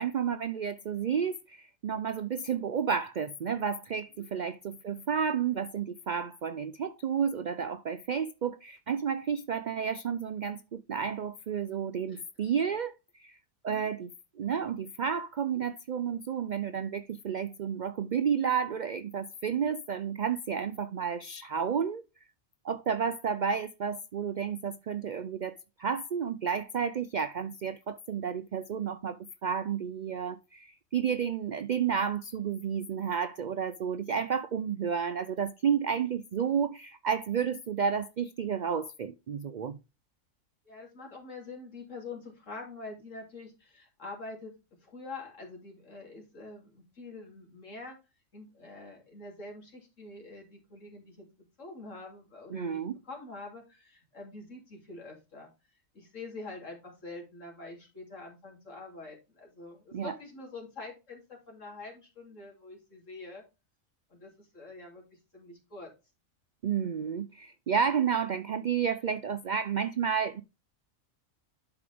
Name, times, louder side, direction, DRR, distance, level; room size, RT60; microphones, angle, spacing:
voice 1, 0.0-13.4 13.6-14.1 14.4-22.0 22.6-39.8 52.5-53.0 59.9-60.1 66.6-70.4, right 7 dB, 75° right, 0.4 m, -31 dB
voice 2, 34.1-34.4 40.6-44.5 44.8-48.0 48.3-51.3 51.6-55.5 55.9-63.4 64.1-65.9, left 3 dB, 70° left, 3.3 m, -45 dB
11.5 x 5.0 x 3.4 m
omnidirectional pair, 1.4 m